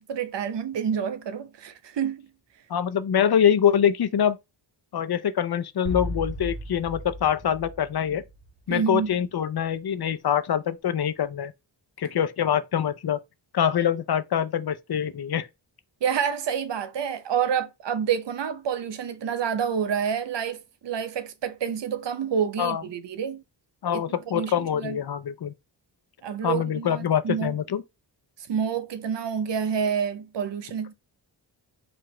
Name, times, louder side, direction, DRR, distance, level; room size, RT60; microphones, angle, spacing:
voice 1, 0.0-2.3 8.7-9.1 16.0-23.4 23.9-25.0 26.2-27.6 28.5-30.9, right 7 dB, 75° right, 0.8 m, -28 dB
voice 2, 2.7-4.4 4.9-8.2 8.7-11.5 12.0-13.2 13.5-15.5 22.6-22.8 23.8-25.5 26.4-27.8, left 9 dB, 60° left, 0.6 m, -24 dB
sound 1, 5.9-8.7, left 1 dB, 30° right, 1.5 m, -35 dB
4.8 x 2.5 x 4.3 m
wide cardioid pair, 150°, 44 cm